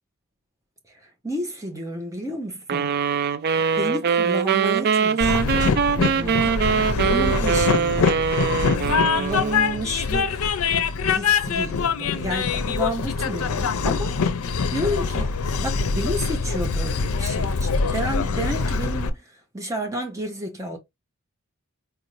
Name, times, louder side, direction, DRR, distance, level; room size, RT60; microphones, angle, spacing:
voice 1, 0.9-3.0 3.8-6.5 7.0-8.2 9.1-10.4 11.0-20.8, equal, 15° right, 0.8 m, -31 dB
sound 1, 2.7-9.9, right 6 dB, 45° right, 0.3 m, -23 dB
Train, 5.2-19.1, left 5 dB, 80° left, 0.5 m, -24 dB
4.7 x 2.6 x 3.0 m
head